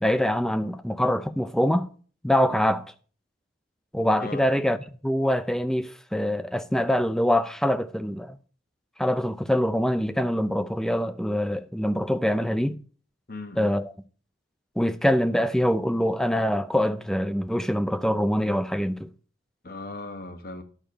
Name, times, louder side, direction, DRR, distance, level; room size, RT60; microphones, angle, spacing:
voice 1, 0.0-1.9 2.2-2.8 3.9-8.4 9.0-12.8 13.6-13.9 14.8-19.1, equal, 5° left, 0.5 m, -24 dB
voice 2, 13.3-13.7 19.6-20.6, left 2 dB, 50° left, 1.2 m, -38 dB
11.0 x 5.1 x 7.0 m
head